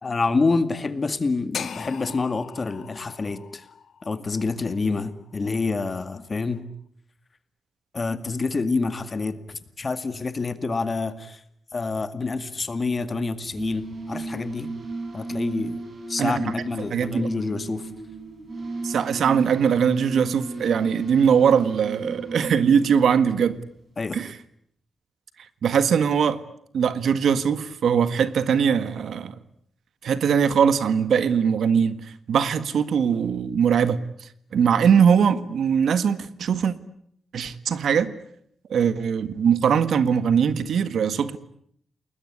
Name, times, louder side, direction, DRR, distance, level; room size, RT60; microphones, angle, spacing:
voice 1, 0.0-3.7 4.0-6.6 7.9-11.4 11.7-14.7 15.1-15.8 16.1-17.9 24.0-24.2, left 3 dB, 35° left, 2.1 m, -27 dB
sound 1, 1.5-5.7, left 7 dB, 75° left, 2.1 m, -39 dB
sound 2, 13.4-23.8, right 2 dB, 50° right, 7.2 m, -35 dB
voice 2, 16.9-17.3 18.8-23.6 24.1-24.3 25.6-26.4 26.7-29.3 30.0-34.0 34.5-36.7 37.3-38.1 38.7-41.4, right 7 dB, 80° right, 1.7 m, -21 dB
29.5 x 21.0 x 9.7 m
wide cardioid pair, 115°, 0 cm